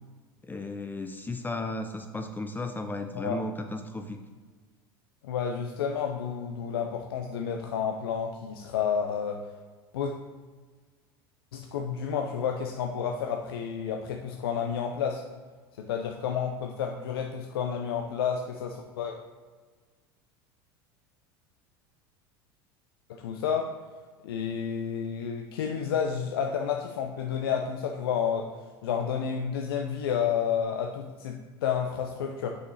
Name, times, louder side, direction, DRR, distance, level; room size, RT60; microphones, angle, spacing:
voice 1, 0.4-4.2, left 2 dB, 15° left, 6 dB, 0.6 m, -34 dB
voice 2, 5.2-9.4 9.9-10.1 11.5-15.2 15.8-19.2 23.1-23.7 24.2-28.5 28.8-32.5, left 7 dB, 80° left, 3 dB, 0.6 m, -30 dB
6.4 x 5.5 x 3.2 m, 1.4 s
hypercardioid pair, 85°, 12 cm